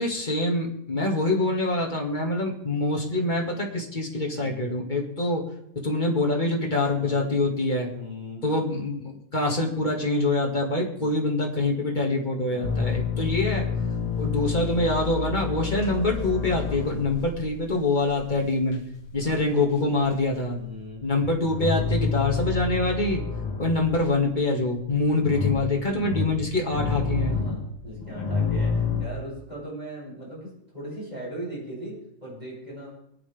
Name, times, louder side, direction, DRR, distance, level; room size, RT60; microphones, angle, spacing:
voice 1, 0.0-5.5 5.8-7.9 8.4-13.7 14.2-18.8 19.1-20.6 21.0-23.2 23.6-27.4, left 2 dB, 15° left, 0 dB, 1.8 m, -25 dB
voice 2, 6.9-7.3 7.9-8.4 10.9-11.3 12.4-12.9 14.0-14.1 17.9-18.1 19.2-19.5 20.5-21.0 26.8-32.9, right 1 dB, 10° right, -7 dB, 7.9 m, -39 dB
sound 1, 12.6-19.3 19.6-20.6 20.9-24.1 24.5-29.1, left 5 dB, 45° left, 2.7 m, -29 dB
24.5 x 10.5 x 3.6 m, 0.76 s
omnidirectional pair, 3.8 m